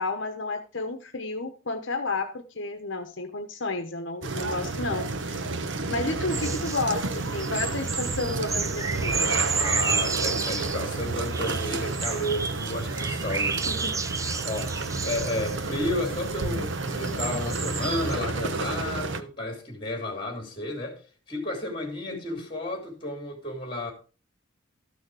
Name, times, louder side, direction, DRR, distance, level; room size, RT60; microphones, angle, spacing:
voice 1, 0.0-5.5 5.9-9.3 13.7-14.0 16.5-16.6 22.1-22.5, left 3 dB, 65° left, 1.0 m, -32 dB
sound 1, 4.2-19.2, right 3 dB, 70° right, 0.9 m, -31 dB
sound 2, 6.3-18.1, right 5 dB, 15° right, 0.4 m, -32 dB
voice 2, 9.6-13.7 14.1-21.0 21.3-23.9, left 1 dB, 25° left, 3.5 m, -32 dB
13.5 x 6.3 x 4.8 m
head